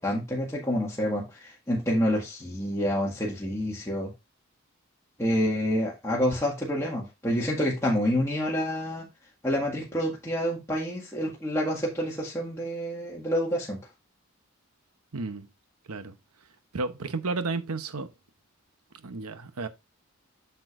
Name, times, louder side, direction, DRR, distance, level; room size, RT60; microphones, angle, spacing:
voice 1, 0.0-4.1 5.2-9.1 9.4-13.8, equal, 15° left, 1.8 m, -28 dB
voice 2, 15.1-15.5 15.9-16.1 16.7-18.1 19.0-19.7, right 3 dB, 85° right, 0.9 m, -32 dB
7.8 x 6.9 x 2.6 m
head